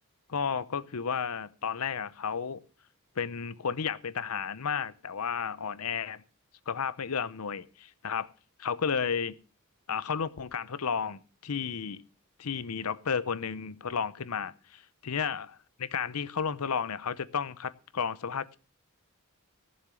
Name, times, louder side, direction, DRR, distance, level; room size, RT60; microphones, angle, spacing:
voice 1, 0.3-2.6 3.2-6.2 6.7-8.3 8.6-9.4 9.9-12.0 12.4-18.6, left 6 dB, 80° left, 0.7 m, -32 dB
14.5 x 7.3 x 6.3 m
head